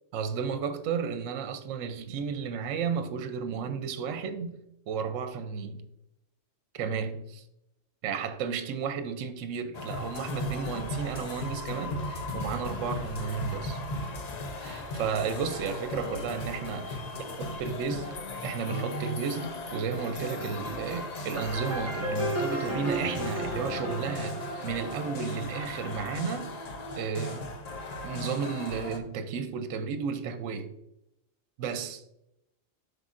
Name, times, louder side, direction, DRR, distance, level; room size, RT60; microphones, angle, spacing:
voice 1, 0.1-4.6 4.9-5.8 6.7-7.4 8.0-13.8 14.6-16.9 17.4-26.6 27.0-27.5 28.0-30.7 31.6-32.0, right 6 dB, 80° right, 0.9 m, -33 dB
sound 1, 9.7-29.0, left 2 dB, 45° left, 0.5 m, -37 dB
sound 2, 21.3-25.9, equal, 10° right, 1.0 m, -34 dB
7.6 x 5.2 x 2.5 m
omnidirectional pair, 1.3 m